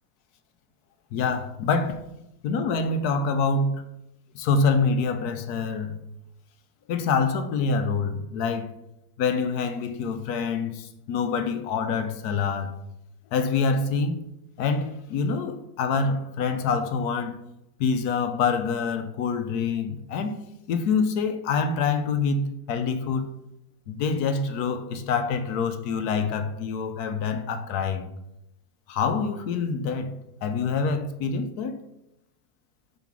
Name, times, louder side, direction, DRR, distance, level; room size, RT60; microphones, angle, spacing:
voice 1, 1.1-2.0 2.4-3.8 4.3-6.0 6.9-8.7 9.2-12.8 13.3-14.2 14.6-17.4 17.8-20.3 20.7-23.3 23.9-28.1 28.9-30.1 30.4-31.8, left 5 dB, 80° left, 1.2 m, -26 dB
5.5 x 4.9 x 6.0 m
omnidirectional pair, 1.6 m